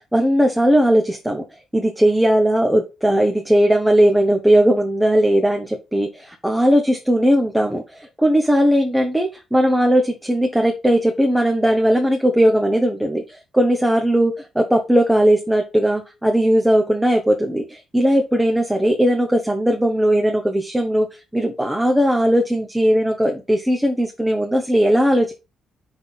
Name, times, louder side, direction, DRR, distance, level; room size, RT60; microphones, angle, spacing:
voice 1, 0.1-1.4 1.7-7.8 8.2-13.2 13.5-21.1 21.3-25.3, equal, 5° right, 3 dB, 1.2 m, -18 dB
6.3 x 3.7 x 5.7 m, 0.27 s
cardioid pair, 90°, 0 cm